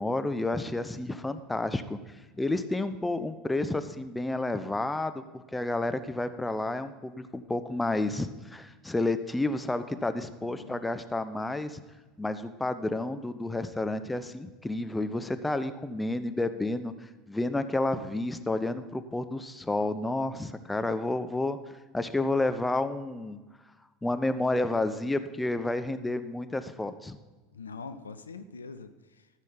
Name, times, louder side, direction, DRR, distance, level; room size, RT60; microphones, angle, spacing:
voice 1, 0.0-2.0 2.4-11.8 12.2-16.9 17.3-23.4 24.0-27.2, left 2 dB, 10° left, 10 dB, 0.7 m, -30 dB
voice 2, 10.4-10.9 27.5-29.3, left 4 dB, 80° left, 11 dB, 0.5 m, -44 dB
13.5 x 6.4 x 5.7 m, 1.3 s
figure-of-eight pair, 75°, 0 cm